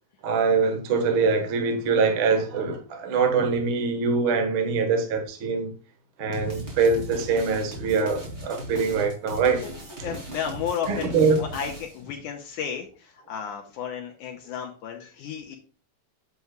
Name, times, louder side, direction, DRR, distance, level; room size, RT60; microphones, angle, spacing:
voice 1, 0.2-5.7 6.2-9.6 10.0-10.2 10.9-11.3, right 5 dB, 55° right, 1.5 m, -23 dB
sound 1, 6.3-12.1, equal, 20° right, 2.6 m, -38 dB
voice 2, 10.0-15.6, left 7 dB, 75° left, 2.3 m, -33 dB
9.3 x 6.9 x 2.3 m
omnidirectional pair, 3.9 m